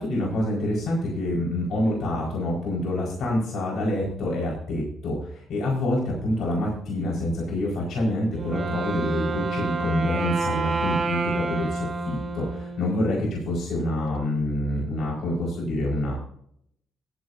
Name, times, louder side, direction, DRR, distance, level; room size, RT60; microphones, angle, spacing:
voice 1, 0.0-16.2, left 1 dB, 75° left, -3 dB, 4.9 m, -27 dB
Wind instrument woodwind instrument, 8.3-13.2, right 3 dB, 45° right, 2.9 m, -28 dB
17.5 x 10.5 x 2.7 m, 0.66 s
cardioid pair, 90°, 0 cm